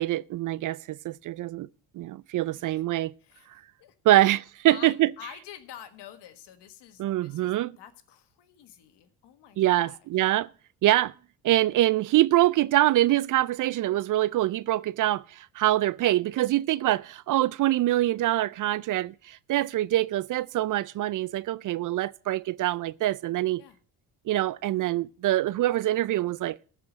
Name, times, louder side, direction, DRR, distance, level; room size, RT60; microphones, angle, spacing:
voice 1, 0.0-1.7 1.9-3.1 4.1-5.1 7.0-7.7 9.6-10.5 10.8-11.1 11.4-23.6 24.3-26.6, right 15 dB, 45° right, 0.4 m, -24 dB
voice 2, 2.5-4.3 4.7-10.2 23.6-23.8, left 10 dB, 65° left, 1.6 m, -48 dB
13.5 x 5.0 x 7.5 m
hypercardioid pair, 60°, 44 cm